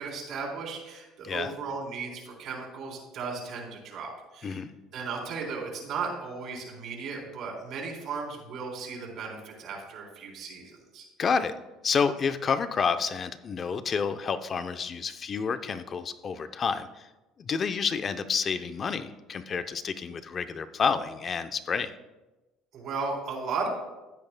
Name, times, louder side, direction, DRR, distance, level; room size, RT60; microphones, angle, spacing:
voice 1, 0.0-4.6 4.9-11.1 22.7-23.7, right 5 dB, 55° right, -2 dB, 3.6 m, -36 dB
voice 2, 11.2-11.5 11.8-17.1 17.4-21.9, left 6 dB, 35° left, 10 dB, 0.6 m, -29 dB
15.5 x 8.8 x 2.2 m, 1.1 s
cardioid pair, 115°, 0 cm